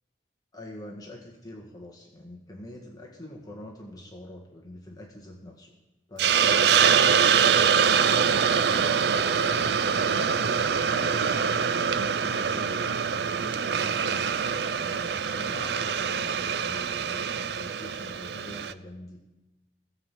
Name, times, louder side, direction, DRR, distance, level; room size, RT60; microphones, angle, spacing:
voice 1, 0.5-5.7 6.1-9.0 9.4-14.3 14.7-19.2, left 1 dB, 20° left, 0 dB, 1.5 m, -44 dB
Hiss, 6.2-18.7, right 7 dB, 65° right, 0.4 m, -24 dB
16.0 x 5.7 x 7.5 m, 1.0 s
head